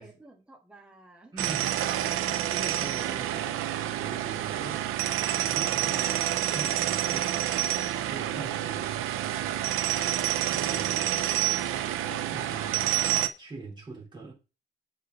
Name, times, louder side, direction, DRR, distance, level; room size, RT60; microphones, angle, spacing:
voice 1, 0.0-1.6, right 1 dB, 5° right, 1.8 m, -53 dB
voice 2, 1.3-1.7 2.2-4.9 5.4-9.8 10.5-11.3 11.9-13.0 13.4-14.3, right 3 dB, 20° right, 3.6 m, -43 dB
sound 1, 1.4-13.3, right 12 dB, 85° right, 0.8 m, -28 dB
7.9 x 4.6 x 6.6 m
cardioid pair, 160°, 21 cm